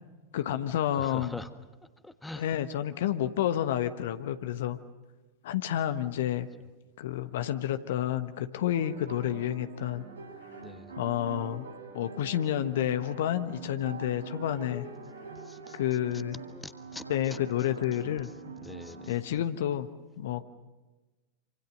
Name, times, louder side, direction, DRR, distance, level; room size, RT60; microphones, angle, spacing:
voice 1, 0.3-1.4 2.4-4.8 5.4-6.5 7.0-10.0 10.9-11.6 11.9-14.9 15.7-16.4 17.1-18.3 19.1-19.9 20.2-20.4, left 11 dB, 55° left, 10 dB, 1.2 m, -30 dB
voice 2, 0.9-1.5 2.0-2.5 10.6-10.9 15.4-15.8 16.6-17.0 17.3-17.4 18.0-18.1 18.4-19.2, left 2 dB, 5° left, 10 dB, 1.4 m, -43 dB
sound 1, 8.7-19.1, right 4 dB, 80° right, 6.4 m, -44 dB
27.0 x 25.5 x 6.6 m, 1.2 s
figure-of-eight pair, 90°, 0 cm